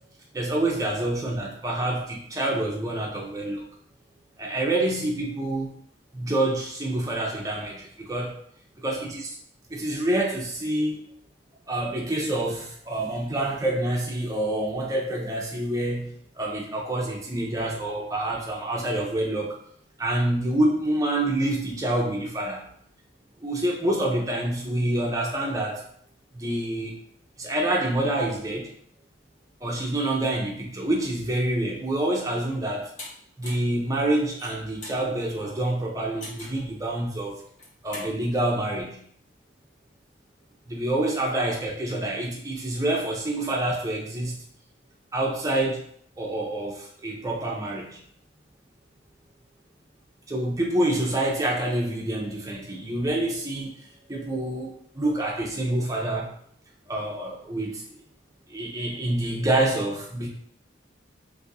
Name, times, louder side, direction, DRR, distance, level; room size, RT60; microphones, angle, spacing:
voice 1, 0.3-3.6 4.4-5.8 6.1-8.4 8.8-9.4 9.7-11.0 11.7-19.6 20.0-22.7 23.4-25.8 26.3-27.0 27.4-28.7 29.6-32.9 33.4-37.4 37.8-39.0 40.7-44.4 45.1-45.8 46.2-48.0 50.3-56.3 56.9-57.8 58.5-60.3, right 1 dB, 15° right, -1 dB, 0.5 m, -27 dB
sound 1, 33.0-33.1 33.4-33.7 34.2-35.0 36.2-36.6 37.5-38.1, left 1 dB, 35° left, 0.8 m, -40 dB
2.6 x 2.4 x 4.0 m, 0.65 s
head